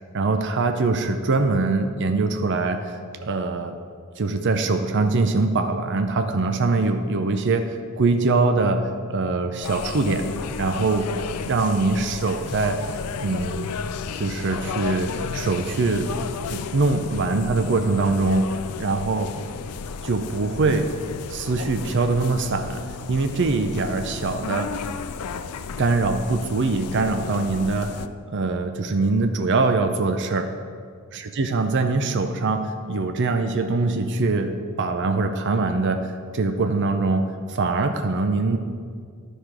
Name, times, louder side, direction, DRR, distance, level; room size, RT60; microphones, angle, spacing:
voice 1, 0.1-3.8 4.2-8.8 9.1-10.2 10.6-11.1 11.4-12.9 13.2-13.7 14.2-16.1 16.5-19.3 20.0-20.9 21.3-22.8 23.1-24.7 25.8-27.9 28.3-30.5 31.1-38.6, right 3 dB, 55° right, 7 dB, 0.5 m, -23 dB
sound 1, 9.6-28.1, left 5 dB, 80° left, 0.4 m, -33 dB
11.0 x 5.0 x 6.0 m, 2.1 s
head